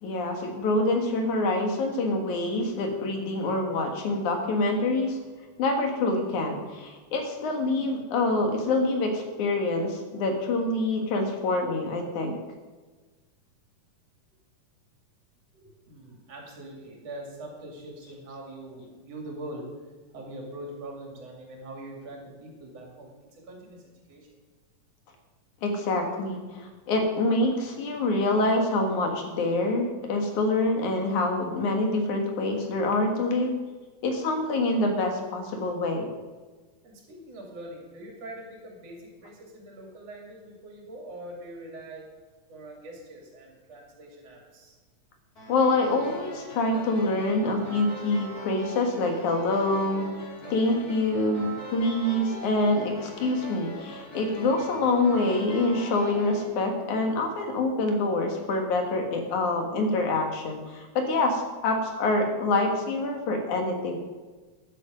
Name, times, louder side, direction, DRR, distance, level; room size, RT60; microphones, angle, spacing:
voice 1, 0.0-5.2 5.6-12.4 25.6-33.6 34.0-36.1 45.5-50.1 50.5-64.0, left 2 dB, 85° left, 3 dB, 3.2 m, -26 dB
voice 2, 15.5-19.7 20.1-24.3 36.8-42.1 42.5-44.8, right 1 dB, 60° right, 0 dB, 3.6 m, -43 dB
sound 1, 45.4-56.4, right 1 dB, 30° left, 3.8 m, -41 dB
13.0 x 9.9 x 5.2 m, 1.3 s
omnidirectional pair, 3.3 m